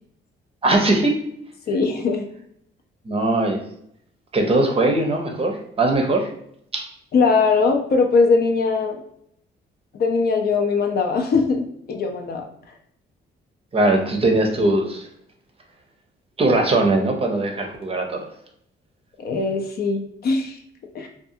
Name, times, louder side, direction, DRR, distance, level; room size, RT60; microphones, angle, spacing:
voice 1, 0.6-1.2 3.1-3.6 4.3-6.3 6.7-6.9 13.7-15.1 16.4-18.3, right 2 dB, 30° right, 2 dB, 0.6 m, -20 dB
voice 2, 1.7-2.3 7.1-9.0 9.9-12.5 19.2-20.6 20.9-21.1, left 4 dB, 50° left, 3 dB, 0.5 m, -20 dB
2.5 x 2.3 x 2.6 m, 0.71 s
cardioid pair, 90°, 20 cm